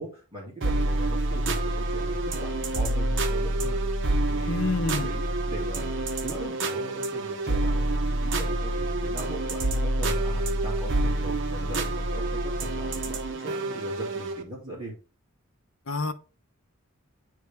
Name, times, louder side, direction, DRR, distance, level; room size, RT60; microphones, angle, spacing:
voice 1, 0.0-3.8 4.3-4.6 5.0-14.9, right 1 dB, 25° right, 2.0 m, -40 dB
sound 1, 0.6-14.4, right 2 dB, 60° right, 0.8 m, -27 dB
voice 2, 4.5-5.1 15.9-16.1, left 3 dB, 65° left, 0.7 m, -27 dB
9.3 x 3.3 x 3.4 m
head